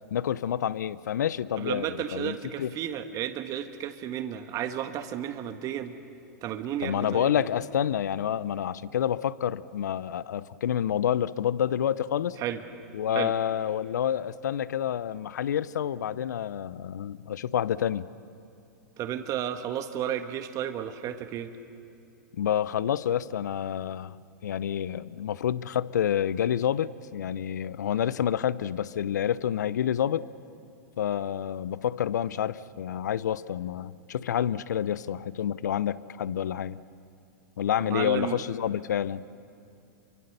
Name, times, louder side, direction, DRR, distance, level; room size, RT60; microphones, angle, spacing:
voice 1, 0.1-2.7 6.8-12.4 12.9-18.1 22.4-24.2 24.4-30.2 31.0-36.8 37.6-39.2, left 9 dB, 80° left, 19 dB, 0.6 m, -28 dB
voice 2, 1.6-5.9 6.4-7.5 12.4-12.6 13.1-13.3 19.0-21.5 37.8-38.4, right 10 dB, 35° right, 8 dB, 1.5 m, -33 dB
29.0 x 24.0 x 6.8 m, 2.6 s
hypercardioid pair, 110°, 9 cm